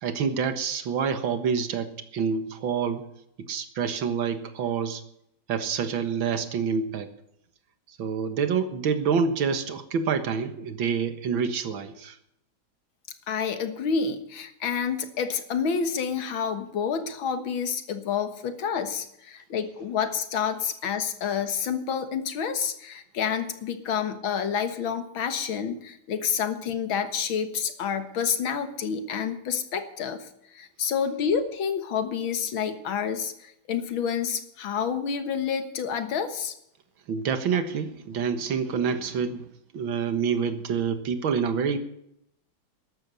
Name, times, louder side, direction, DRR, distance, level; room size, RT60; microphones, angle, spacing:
voice 1, 0.0-3.0 3.4-5.0 5.5-7.1 8.0-12.2 37.1-39.5 39.7-41.8, right 6 dB, 75° right, 10 dB, 2.2 m, -27 dB
voice 2, 13.3-36.5, left 7 dB, 75° left, 10 dB, 2.2 m, -29 dB
13.0 x 11.5 x 6.9 m, 0.76 s
omnidirectional pair, 2.2 m